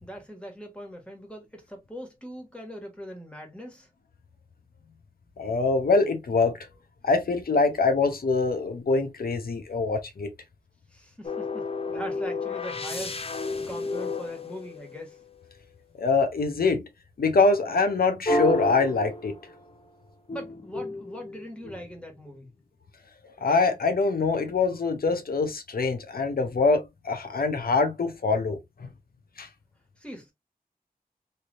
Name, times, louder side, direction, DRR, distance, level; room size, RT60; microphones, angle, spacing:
voice 1, 0.0-3.9 10.9-15.2 20.3-22.5 30.0-30.3, equal, 5° left, 1.5 m, -41 dB
voice 2, 5.4-6.6 7.0-10.3 16.0-16.8 17.2-19.4 23.4-28.6 29.4-29.5, left 4 dB, 80° left, 0.7 m, -24 dB
sound 1, 11.2-15.4 18.3-19.8 20.3-22.0, left 2 dB, 40° left, 0.7 m, -31 dB
3.2 x 2.7 x 2.5 m
wide cardioid pair, 65°, 15 cm